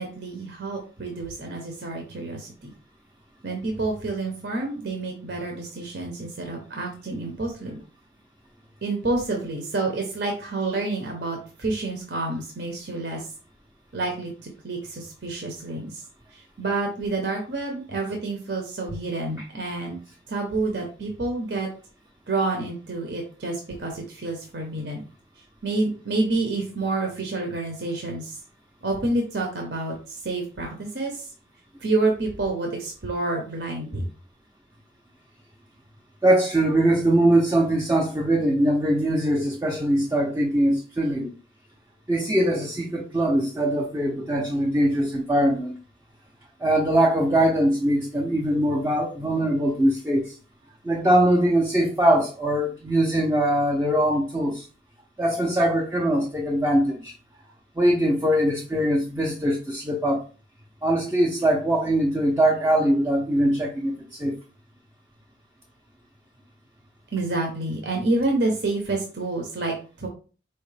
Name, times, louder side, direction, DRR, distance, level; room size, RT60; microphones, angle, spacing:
voice 1, 0.0-2.7 3.4-7.8 8.8-13.3 13.9-14.3 14.6-16.0 16.3-20.0 20.3-21.7 22.3-25.0 25.6-28.4 28.8-31.3 31.8-34.1 67.1-70.1, right 2 dB, 60° right, 0.9 m, -28 dB
voice 2, 36.2-41.3 42.1-45.8 46.6-50.3 50.8-54.7 55.2-57.1 57.8-60.2 60.8-64.4, right 1 dB, 15° right, 0.5 m, -22 dB
4.6 x 3.0 x 3.3 m
head